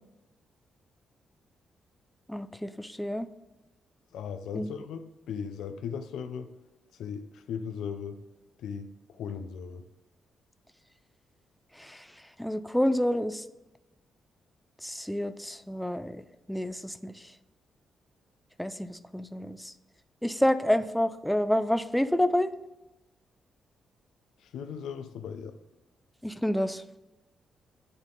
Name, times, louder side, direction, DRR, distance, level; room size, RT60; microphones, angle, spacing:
voice 1, 2.3-3.3 4.5-4.7 11.8-12.0 12.4-13.4 14.8-16.2 16.5-17.1 18.6-19.7 20.2-22.5 26.2-26.8, left 1 dB, 5° left, 12 dB, 0.4 m, -28 dB
voice 2, 4.1-6.5 7.0-8.2 8.6-8.9 9.2-9.8 24.5-25.5, left 7 dB, 85° left, 9 dB, 0.5 m, -37 dB
9.9 x 3.5 x 3.9 m, 1.0 s
cardioid pair, 80°, 0 cm